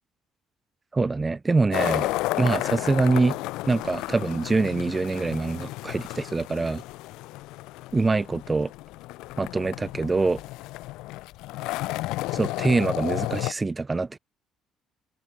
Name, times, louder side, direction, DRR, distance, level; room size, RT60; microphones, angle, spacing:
voice 1, 0.9-2.1 2.4-3.4 3.7-6.8 7.9-8.7 9.4-10.4 12.3-14.2, right 3 dB, 25° right, 0.6 m, -24 dB
sound 1, 1.7-13.5, left 19 dB, 70° left, 1.0 m, -32 dB
hypercardioid pair, 50°, 0 cm